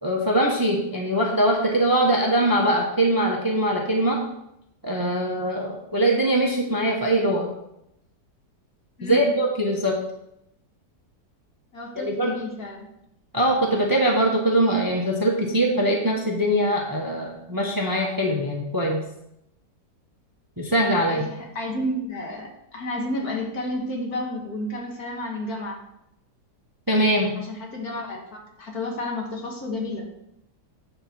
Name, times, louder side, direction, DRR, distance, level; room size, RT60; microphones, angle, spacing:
voice 1, 0.0-4.2 4.8-7.5 9.0-9.9 12.0-12.3 13.3-19.0 20.6-21.2 26.9-27.3, right 1 dB, 15° right, 0 dB, 0.9 m, -22 dB
voice 2, 9.0-9.3 11.7-12.9 21.0-25.8 27.4-30.1, left 1 dB, 60° left, 0 dB, 2.0 m, -31 dB
9.0 x 4.3 x 6.0 m, 0.81 s
omnidirectional pair, 1.9 m